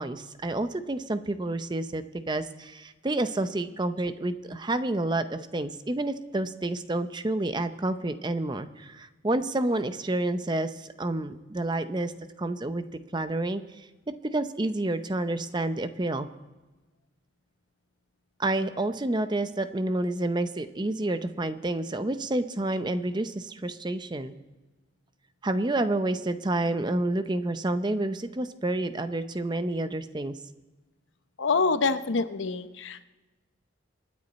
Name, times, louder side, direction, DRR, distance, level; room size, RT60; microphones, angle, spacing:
voice 1, 0.0-12.1 12.4-12.8 13.1-13.6 14.2-16.3 18.4-24.3 25.4-30.3, right 2 dB, 25° right, 10 dB, 0.6 m, -29 dB
voice 2, 31.4-33.1, left 4 dB, 85° left, 11 dB, 0.8 m, -26 dB
26.0 x 9.7 x 4.1 m, 1.2 s
head